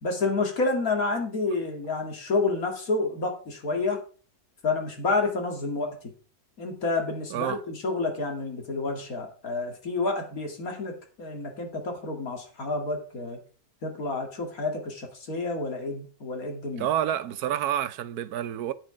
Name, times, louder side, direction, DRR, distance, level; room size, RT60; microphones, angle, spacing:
voice 1, 0.0-4.0 4.6-6.0 6.6-13.4 13.8-16.9, left 3 dB, 70° left, 2.6 m, -29 dB
voice 2, 16.8-18.7, right 11 dB, 90° right, 1.3 m, -28 dB
10.0 x 8.0 x 4.9 m
omnidirectional pair, 1.6 m